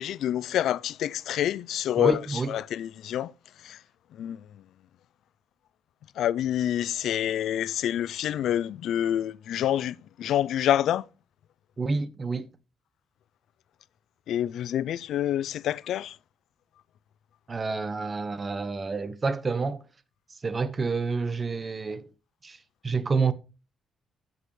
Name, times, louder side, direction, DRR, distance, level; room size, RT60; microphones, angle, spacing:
voice 1, 0.0-3.3 3.6-3.8 4.2-4.4 6.2-11.0 14.3-16.2, left 11 dB, 75° left, 0.4 m, -27 dB
voice 2, 2.0-2.5 11.8-12.5 17.5-19.8 20.3-22.1 22.4-22.6 22.8-23.3, right 4 dB, 30° right, 0.9 m, -28 dB
16.0 x 5.4 x 3.2 m
cardioid pair, 90°, 0 cm